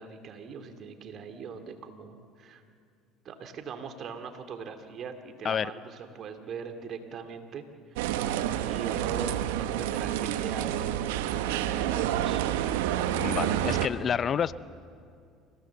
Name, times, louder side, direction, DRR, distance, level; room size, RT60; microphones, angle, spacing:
voice 1, 0.0-2.6 3.2-7.6 7.9-8.1 8.6-12.4, right 6 dB, 50° right, 6 dB, 2.3 m, -41 dB
sound 1, 8.0-13.9, right 11 dB, 85° right, 1.0 m, -29 dB
voice 2, 13.1-14.5, left 8 dB, 40° left, 17 dB, 0.5 m, -29 dB
28.5 x 16.5 x 7.1 m, 2.3 s
supercardioid pair, 80°, 0 cm